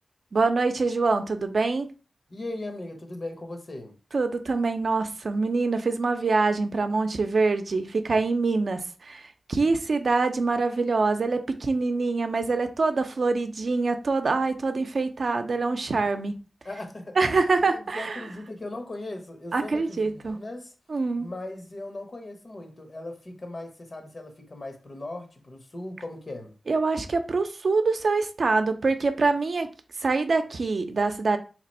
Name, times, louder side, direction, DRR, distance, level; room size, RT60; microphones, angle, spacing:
voice 1, 0.3-1.9 4.1-16.4 17.2-18.3 19.5-20.4 20.9-21.3 26.7-29.7 30.0-31.4, right 3 dB, 70° right, 0.5 m, -25 dB
voice 2, 2.3-3.9 16.6-17.2 17.7-20.7 21.2-26.5, left 2 dB, 55° left, 0.9 m, -38 dB
2.9 x 2.5 x 4.2 m
cardioid pair, 50°, 0 cm